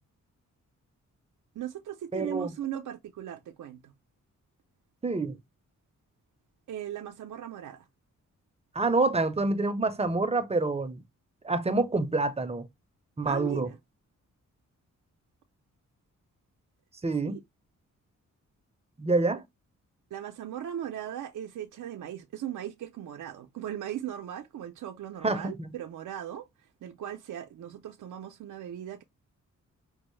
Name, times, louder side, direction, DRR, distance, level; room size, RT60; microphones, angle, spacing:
voice 1, 1.5-3.9 6.7-7.9 13.3-13.8 17.3-17.4 20.1-29.0, right 10 dB, 70° right, 0.5 m, -38 dB
voice 2, 2.1-2.5 5.0-5.4 8.7-11.0 11.4-12.7 13.2-13.7 17.0-17.4 19.0-19.4 25.2-25.7, right 3 dB, 20° right, 0.6 m, -27 dB
5.3 x 2.0 x 3.0 m
wide cardioid pair, 105°, 31 cm